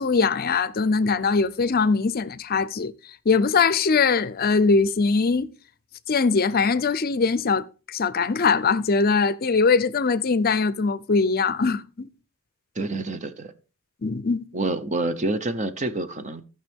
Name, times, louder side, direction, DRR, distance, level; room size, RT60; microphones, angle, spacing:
voice 1, 0.0-2.9 3.3-5.5 6.1-12.1 14.0-14.4, left 4 dB, 45° left, 0.5 m, -21 dB
voice 2, 12.8-13.5 14.5-16.4, right 2 dB, 35° right, 0.9 m, -27 dB
16.5 x 5.9 x 3.6 m
head